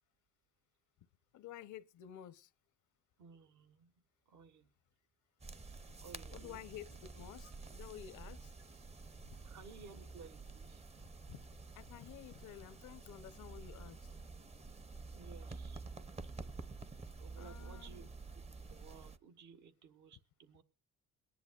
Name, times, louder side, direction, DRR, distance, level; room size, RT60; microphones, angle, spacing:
voice 1, 1.3-2.5 6.3-8.5 11.3-11.4 11.8-14.0 17.4-18.1, left 11 dB, 75° left, 0.7 m, -51 dB
voice 2, 3.2-3.9 4.3-4.7 6.0-6.6 9.4-10.8 15.1-15.9 17.2-18.1 18.6-20.6, right 5 dB, 75° right, 1.4 m, -57 dB
sound 1, 5.4-19.2, right 3 dB, 20° right, 0.6 m, -50 dB
23.0 x 10.5 x 2.4 m
cardioid pair, 90°, 30 cm